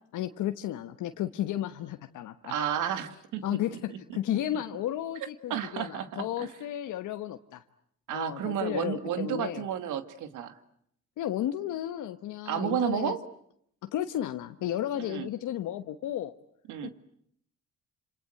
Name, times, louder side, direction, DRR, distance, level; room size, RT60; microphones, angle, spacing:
voice 1, 0.1-2.6 3.4-7.6 8.1-9.6 11.2-13.2 13.8-16.3 16.8-16.9, left 12 dB, 85° left, 7 dB, 1.2 m, -33 dB
voice 2, 2.5-4.0 5.5-6.5 8.1-10.5 12.5-13.2 15.0-15.3 16.7-16.9, right 9 dB, 85° right, 10 dB, 2.2 m, -32 dB
27.5 x 27.0 x 7.8 m, 0.68 s
cardioid pair, 90°, 30 cm